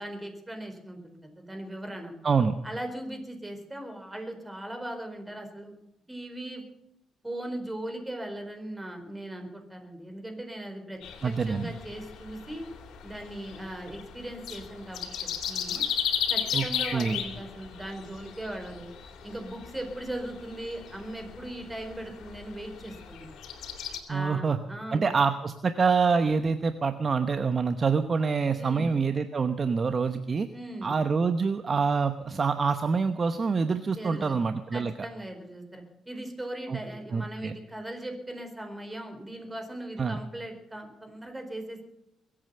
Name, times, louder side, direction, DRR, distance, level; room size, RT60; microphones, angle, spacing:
voice 1, 0.0-2.1 2.6-5.8 6.1-6.6 7.2-12.7 13.0-15.8 16.3-18.9 19.2-23.4 24.1-25.1 28.5-28.9 30.5-30.9 33.9-34.4 34.7-41.8, right 1 dB, 15° right, 5 dB, 4.3 m, -39 dB
voice 2, 2.2-2.6 11.2-11.7 16.5-16.7 16.9-17.2 24.1-24.6 24.9-30.5 30.8-34.9 36.7-36.8 37.1-37.5 40.0-40.2, right 5 dB, 40° right, 9 dB, 1.0 m, -26 dB
sound 1, 11.0-24.0, left 8 dB, 80° left, 3.2 m, -36 dB
22.5 x 8.8 x 6.8 m, 0.86 s
cardioid pair, 90°, 0 cm